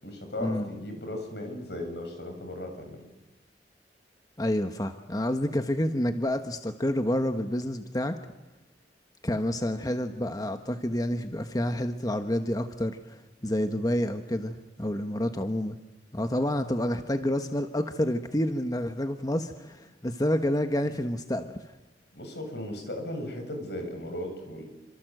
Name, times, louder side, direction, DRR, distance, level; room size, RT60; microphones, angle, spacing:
voice 1, 0.0-3.0 20.8-21.0 22.1-24.6, left 1 dB, 70° left, 5 dB, 7.7 m, -36 dB
voice 2, 4.4-8.2 9.2-15.8 16.1-21.6, left 1 dB, 20° left, 7 dB, 1.2 m, -29 dB
28.5 x 26.0 x 7.9 m, 0.96 s
head